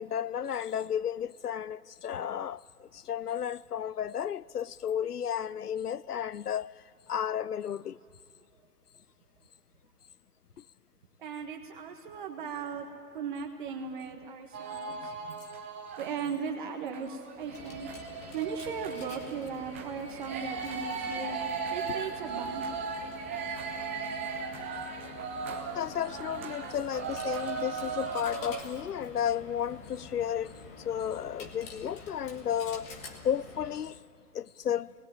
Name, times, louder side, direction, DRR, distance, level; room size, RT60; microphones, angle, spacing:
voice 1, 0.0-6.7 7.1-8.0 21.8-22.0 25.7-30.5 30.8-32.9 33.2-34.0 34.3-34.9, left 9 dB, 75° left, 0.6 m, -33 dB
voice 2, 11.2-12.9 13.1-15.4 16.0-17.9 18.3-21.4 21.7-22.7, right 6 dB, 30° right, 1.5 m, -37 dB
sound 1, 14.5-16.1 16.5-28.6, right 5 dB, 10° right, 0.5 m, -37 dB
Coin (dropping), 17.3-34.0, left 5 dB, 15° left, 1.3 m, -47 dB
26.5 x 20.0 x 8.8 m
figure-of-eight pair, 135°, 46 cm